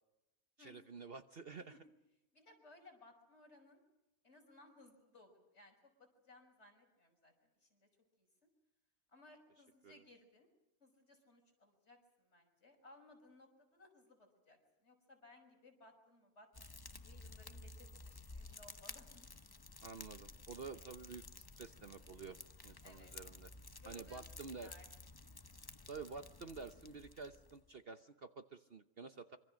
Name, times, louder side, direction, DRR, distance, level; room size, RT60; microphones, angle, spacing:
voice 1, 0.6-1.8 9.8-10.0 19.8-23.5 23.9-24.7 25.9-29.4, right 4 dB, 45° right, 9 dB, 1.1 m, -50 dB
voice 2, 2.3-3.8 4.2-7.9 8.2-8.3 9.1-10.5 10.8-19.3 22.8-23.1 23.8-24.9, left 2 dB, 50° left, 3 dB, 6.1 m, -63 dB
Fire, 16.5-27.7, left 2 dB, 20° left, 0.7 m, -54 dB
25.5 x 25.5 x 6.4 m, 0.95 s
omnidirectional pair, 1.5 m